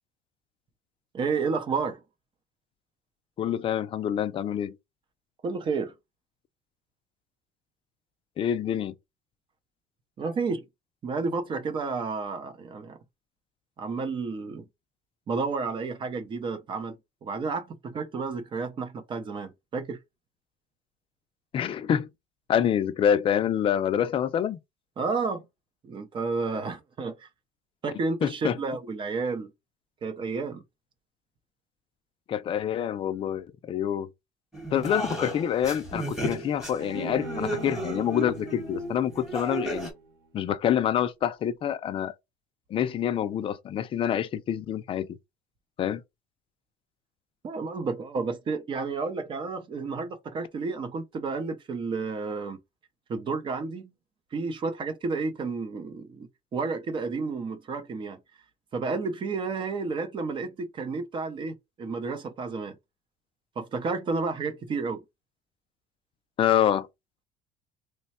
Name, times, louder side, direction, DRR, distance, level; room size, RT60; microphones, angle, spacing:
voice 1, 1.1-2.0 5.4-5.9 10.2-10.7 11.0-13.0 13.8-14.7 15.3-16.9 17.2-20.0 25.0-25.5 25.8-27.3 27.8-29.5 30.0-30.6 47.4-52.6 53.1-53.9 54.3-58.2 58.7-62.8 63.6-65.0, right 4 dB, 30° right, 0.6 m, -31 dB
voice 2, 3.4-4.7 8.4-8.9 21.5-22.1 22.5-24.6 28.2-28.6 32.3-34.1 34.7-39.9 40.3-42.1 42.7-45.1 45.8-46.0 66.4-66.9, left 9 dB, 35° left, 0.5 m, -26 dB
sound 1, 34.5-39.9, right 1 dB, 5° right, 1.2 m, -34 dB
Bowed string instrument, 36.8-40.1, right 4 dB, 70° right, 1.2 m, -40 dB
3.2 x 2.2 x 4.2 m
cardioid pair, 145°, 16 cm